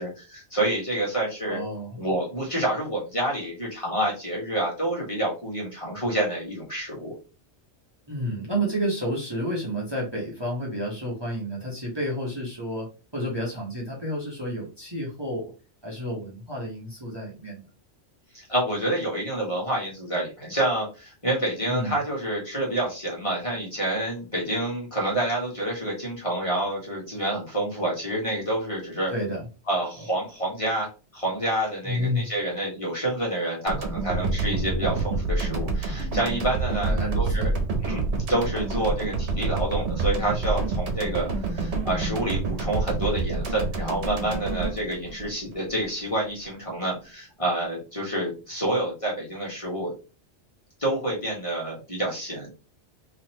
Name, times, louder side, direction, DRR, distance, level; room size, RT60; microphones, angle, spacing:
voice 1, 0.0-1.6 1.9-7.1 18.3-29.1 29.7-37.5 37.8-38.0 38.3-49.9 50.8-52.5, right 1 dB, 30° left, -4 dB, 1.6 m, -28 dB
voice 2, 1.5-2.1 8.1-12.9 13.1-15.5 15.8-17.6 21.7-22.0 29.1-29.4 31.8-32.3 36.9-37.5, equal, 25° right, -4 dB, 1.2 m, -30 dB
sound 1, 33.7-45.9, right 3 dB, 70° right, 1.2 m, -28 dB
3.9 x 3.1 x 3.0 m, 0.32 s
omnidirectional pair, 1.2 m